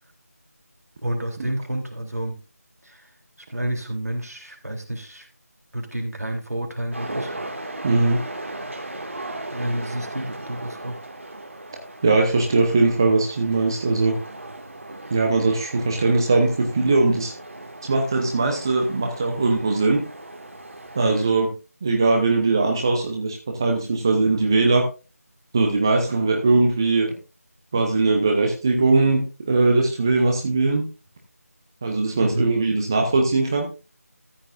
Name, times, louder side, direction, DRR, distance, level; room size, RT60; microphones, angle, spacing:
voice 1, 1.0-2.4 2.8-3.1 3.5-5.3 5.7-7.3 9.5-11.0 32.2-32.5, right 1 dB, 70° right, 2 dB, 3.3 m, -29 dB
sound 1, 6.9-21.3, right 2 dB, 50° right, 2.1 m, -37 dB
voice 2, 7.8-8.2 12.0-14.2 15.1-17.3 17.9-20.0 21.0-21.5 21.8-24.8 25.5-27.1 27.7-30.8 31.8-33.7, right 3 dB, 15° right, 2 dB, 0.8 m, -20 dB
14.0 x 9.6 x 2.5 m, 0.31 s
figure-of-eight pair, 165°, 9 cm